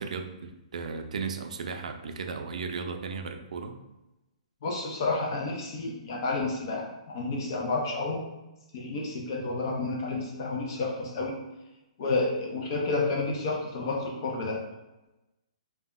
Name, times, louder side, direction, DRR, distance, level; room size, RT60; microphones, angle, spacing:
voice 1, 0.0-3.8, right 5 dB, 80° right, 6 dB, 0.3 m, -35 dB
voice 2, 4.6-6.9 7.1-8.2 8.7-11.4 12.0-14.6, left 3 dB, 35° left, -1 dB, 0.4 m, -30 dB
2.1 x 2.1 x 3.5 m, 0.99 s
hypercardioid pair, 175°, 4 cm